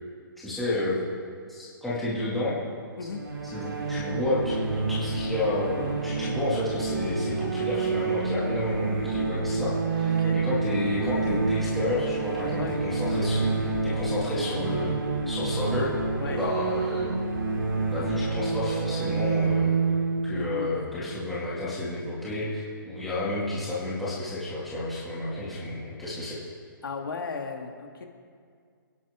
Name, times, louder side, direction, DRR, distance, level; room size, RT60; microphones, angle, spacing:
voice 1, 0.4-1.0 1.5-2.6 3.4-15.0 15.3-15.9 16.2-17.1 17.9-19.8 20.3-26.4, left 2 dB, ahead, -11 dB, 2.2 m, -31 dB
sound 1, 3.1-21.7, right 4 dB, 70° right, 2.9 m, -28 dB
voice 2, 10.1-10.4 12.6-12.8 16.2-16.5 20.3-20.9 26.8-28.1, left 5 dB, 70° left, 3 dB, 2.0 m, -36 dB
28.5 x 10.5 x 3.6 m, 2.2 s
hypercardioid pair, 180°, 12 cm